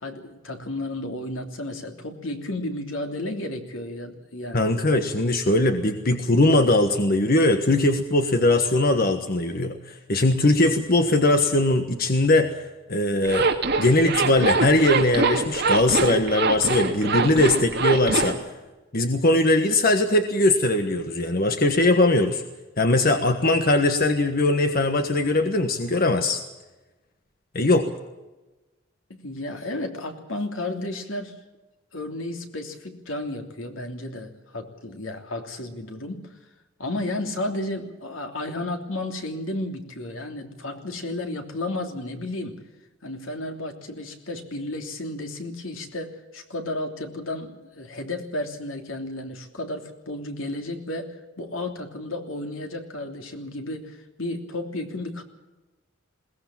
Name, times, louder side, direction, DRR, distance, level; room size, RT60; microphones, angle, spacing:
voice 1, 0.0-4.7 29.1-31.4 31.9-36.3 36.8-42.6 43.0-55.2, left 1 dB, 80° left, 4 dB, 3.1 m, -33 dB
voice 2, 4.5-12.5 12.9-13.5 13.8-18.4 18.9-22.4 22.8-26.4 27.5-27.9, left 2 dB, 45° left, 6 dB, 1.4 m, -20 dB
Zipper (clothing), 13.3-18.4, right 4 dB, 55° right, 2.3 m, -23 dB
21.5 x 18.5 x 7.4 m, 1.1 s
head